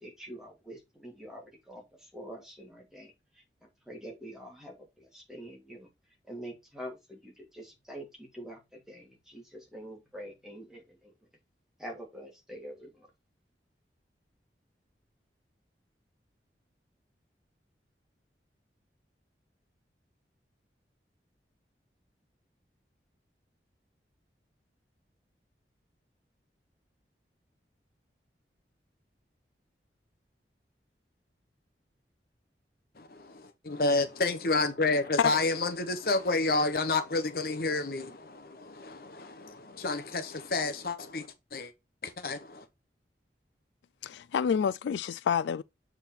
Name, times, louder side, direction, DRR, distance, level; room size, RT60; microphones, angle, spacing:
voice 1, 0.0-3.4 3.9-5.9 6.3-11.1 11.8-13.1, equal, 5° right, 2.0 m, -45 dB
voice 2, 33.0-41.7 42.0-42.6, left 3 dB, 55° left, 0.8 m, -30 dB
voice 3, 44.0-45.6, left 7 dB, 90° left, 0.3 m, -28 dB
7.1 x 3.6 x 4.3 m
head